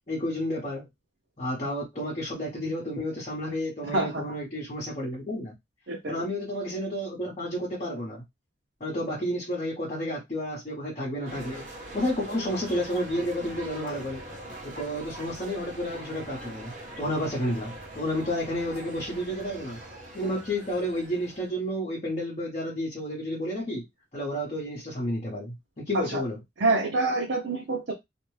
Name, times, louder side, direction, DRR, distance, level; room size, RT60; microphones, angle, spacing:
voice 1, 0.1-0.9 1.4-5.5 6.1-8.2 8.8-11.6 11.9-14.2 14.6-19.8 20.1-23.8 24.1-26.4, equal, 40° left, 0.9 m, -31 dB
voice 2, 3.8-4.2 5.9-6.1 25.9-26.2 26.6-27.9, right 2 dB, 80° right, 0.7 m, -26 dB
sound 1, 11.2-21.5, right 1 dB, 45° right, 0.9 m, -42 dB
2.6 x 2.2 x 3.1 m
head